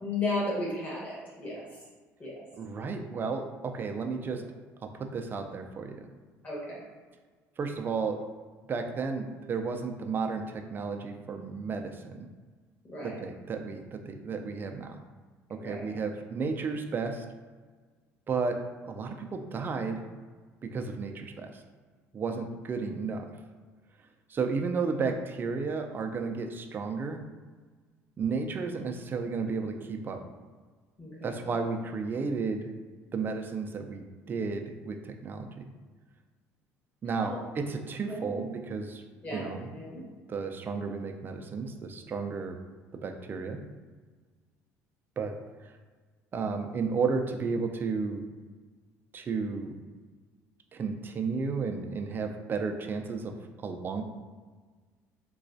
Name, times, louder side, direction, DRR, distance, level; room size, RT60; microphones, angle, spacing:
voice 1, 0.0-1.6 2.2-2.4 4.2-4.3 6.4-6.8 12.9-13.2 15.6-15.9 31.0-31.4 37.2-37.4 38.1-38.5 39.2-40.0, left 2 dB, 25° left, -5 dB, 1.4 m, -35 dB
voice 2, 2.6-4.4 4.8-6.1 7.6-8.2 8.7-12.3 13.0-15.0 15.5-17.2 18.3-18.6 18.8-20.0 20.6-21.6 22.1-23.3 24.3-27.2 28.2-30.2 31.2-32.7 33.1-35.6 37.0-39.0 39.3-39.7 40.3-42.6 43.0-43.6 45.2-45.3 45.6-45.7 46.3-48.2 49.1-49.7 50.7-53.4 53.6-54.0, right 4 dB, 35° right, 4 dB, 0.4 m, -33 dB
3.9 x 2.3 x 2.6 m, 1.4 s
supercardioid pair, 95°, 6 cm